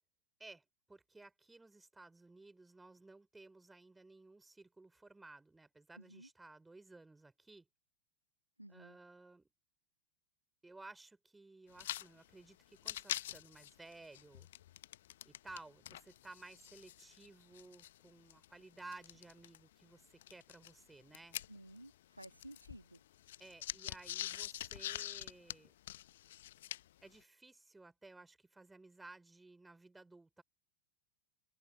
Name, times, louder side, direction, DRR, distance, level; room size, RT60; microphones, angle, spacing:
voice 1, 0.4-7.7 8.7-9.5 10.6-14.5 15.2-21.4 23.4-25.7 27.0-30.4, right 2 dB, 10° right, 4.4 m, -56 dB
voice 2, 6.0-6.3 8.6-9.0 21.5-23.4, right 1 dB, 85° right, 2.1 m, -55 dB
sound 1, 11.7-12.1 12.3-12.4 12.7-15.6 15.9-19.6 20.2-21.9 22.2-27.0, left 13 dB, 55° left, 1.0 m, -45 dB
figure-of-eight pair, 90°, 0 cm